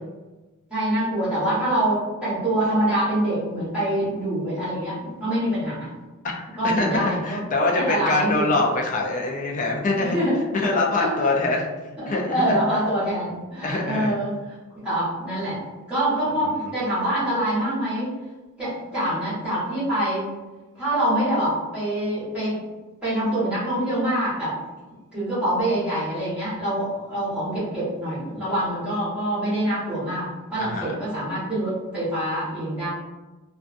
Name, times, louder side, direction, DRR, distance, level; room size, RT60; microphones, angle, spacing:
voice 1, 0.7-5.9 6.6-7.4 7.7-8.5 10.0-10.4 10.9-11.1 12.1-14.3 14.8-15.6 15.9-18.1 18.6-20.3 20.7-22.6 23.0-24.5 25.1-32.9, right 1 dB, 5° right, -13 dB, 1.1 m, -25 dB
voice 2, 6.6-10.2 10.5-11.7 12.1-12.6 13.6-14.1 16.5-16.7 30.6-30.9, left 2 dB, 35° left, -1 dB, 0.4 m, -24 dB
2.5 x 2.3 x 2.4 m, 1.2 s
head